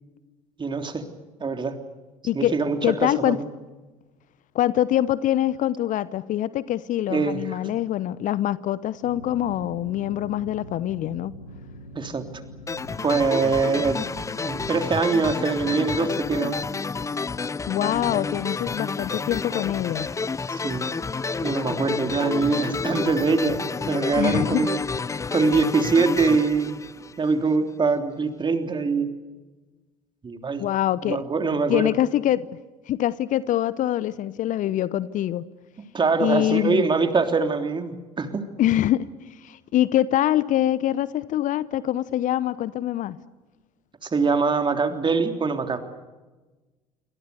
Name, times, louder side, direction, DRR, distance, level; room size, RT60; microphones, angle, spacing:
voice 1, 0.6-1.0 1.4-1.8 2.3-3.4 7.1-7.4 11.9-12.2 13.0-14.0 14.4-16.6 20.5-20.8 21.4-23.6 23.9-24.8 25.3-26.8 27.2-29.1 30.2-30.6 31.1-31.9 35.9-38.4 44.0-45.8, right 4 dB, 25° right, 6 dB, 3.4 m, -23 dB
voice 2, 2.2-2.6 2.8-3.4 4.5-11.3 17.7-20.1 24.2-24.7 30.6-31.2 31.7-32.5 32.9-35.4 36.2-36.8 38.6-43.2, left 12 dB, 45° left, 19 dB, 0.9 m, -24 dB
sound 1, 9.0-14.9, equal, 90° left, 2.9 m, -43 dB
sound 2, 12.7-27.5, left 4 dB, 15° left, 0.7 m, -30 dB
27.5 x 25.0 x 6.7 m, 1.2 s
figure-of-eight pair, 60°, 18 cm